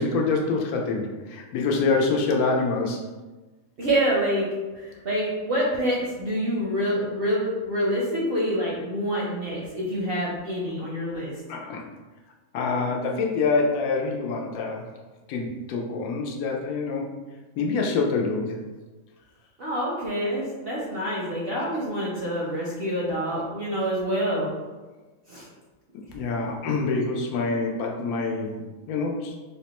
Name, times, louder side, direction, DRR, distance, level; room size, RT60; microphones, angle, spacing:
voice 1, 0.0-3.0 11.5-11.8 12.5-14.8 15.3-17.1 17.6-18.6 25.9-29.3, left 3 dB, 85° left, 1 dB, 1.1 m, -26 dB
voice 2, 3.8-4.5 4.7-11.3 19.6-24.5 25.3-25.5, equal, 60° right, -5 dB, 0.6 m, -26 dB
3.6 x 2.1 x 2.9 m, 1.2 s
omnidirectional pair, 1.5 m